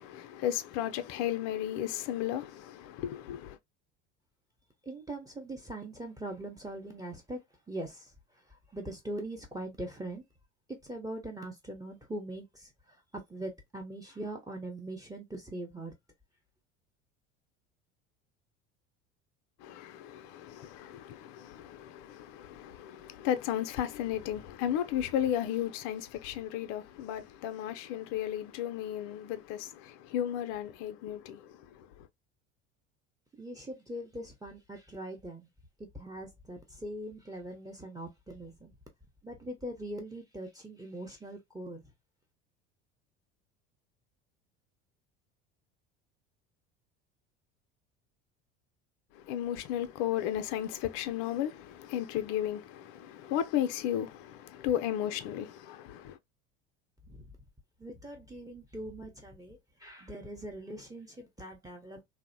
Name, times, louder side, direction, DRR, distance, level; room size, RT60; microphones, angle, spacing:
voice 1, 0.0-3.6 19.6-32.1 49.1-56.2, left 11 dB, 55° left, 0.5 m, -34 dB
voice 2, 4.8-7.4 7.7-8.1 8.5-10.2 10.7-12.7 13.1-15.9 33.4-35.5 35.8-38.7 39.2-41.8 57.1-57.2 57.8-62.0, right 1 dB, 10° right, 0.7 m, -41 dB
2.6 x 2.0 x 2.5 m
hypercardioid pair, 80°, 37 cm